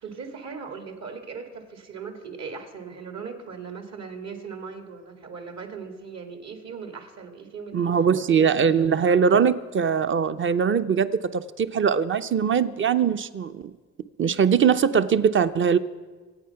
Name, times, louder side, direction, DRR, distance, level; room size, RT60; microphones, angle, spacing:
voice 1, 0.0-7.9 8.3-9.3, right 5 dB, 60° right, 6 dB, 2.2 m, -39 dB
voice 2, 7.7-13.7 14.2-15.8, right 7 dB, 40° right, 12 dB, 0.7 m, -21 dB
25.0 x 8.6 x 5.8 m, 1.4 s
cardioid pair, 90°, 30 cm